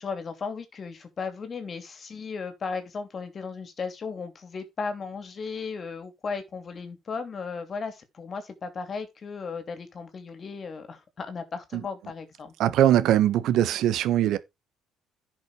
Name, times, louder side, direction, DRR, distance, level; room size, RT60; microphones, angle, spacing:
voice 1, 0.0-12.5, left 5 dB, 40° left, 2.9 m, -35 dB
voice 2, 12.6-14.4, right 12 dB, 70° right, 1.2 m, -21 dB
11.0 x 6.1 x 4.9 m
cardioid pair, 95°, 0 cm